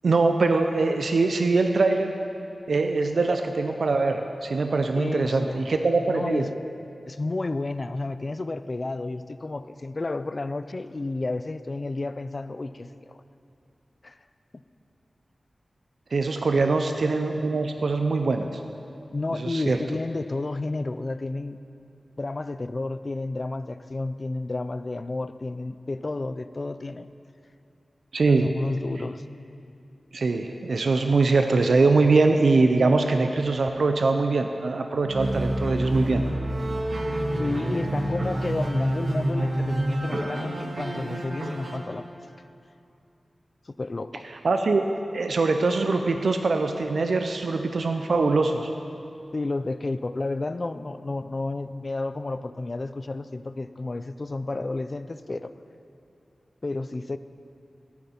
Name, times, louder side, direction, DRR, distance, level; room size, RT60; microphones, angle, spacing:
voice 1, 0.0-2.1 2.7-6.5 16.1-18.5 19.4-19.8 28.1-28.5 30.1-36.2 44.4-48.7, right 3 dB, 75° right, 6 dB, 0.5 m, -23 dB
voice 2, 5.0-5.7 6.1-6.5 7.1-13.2 14.0-14.2 16.5-16.8 19.1-21.6 22.2-27.1 28.3-29.2 37.4-42.1 43.8-44.2 49.3-55.5 56.6-57.2, left 2 dB, 40° left, 13 dB, 0.4 m, -31 dB
sound 1, 35.0-41.8, right 1 dB, 55° right, 1.3 m, -28 dB
14.5 x 9.3 x 4.3 m, 2.6 s
wide cardioid pair, 85°, 0 cm